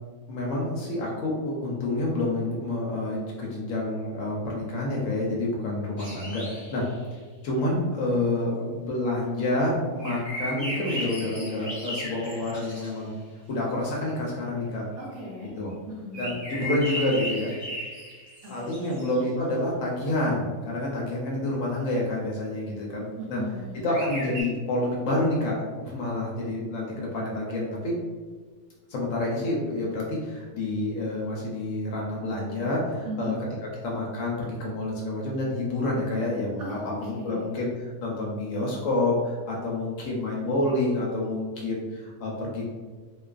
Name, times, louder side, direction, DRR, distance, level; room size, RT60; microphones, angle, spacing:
voice 1, 0.3-6.9 7.1-13.1 13.5-14.9 15.6-15.7 16.1-17.5 18.5-23.4 23.8-27.9 28.9-33.4 33.6-37.7 38.0-42.7, left 1 dB, 70° left, -3 dB, 0.8 m, -28 dB
sound 1, 6.0-6.9 10.0-13.0 16.1-19.2 23.9-24.4, equal, 25° right, 0.8 m, -36 dB
voice 2, 15.0-15.5 15.9-16.4 18.4-19.0 23.2-23.9 33.0-33.4 36.6-37.5, equal, 65° right, -5 dB, 0.8 m, -37 dB
2.4 x 2.3 x 2.3 m, 1.5 s
omnidirectional pair, 1.6 m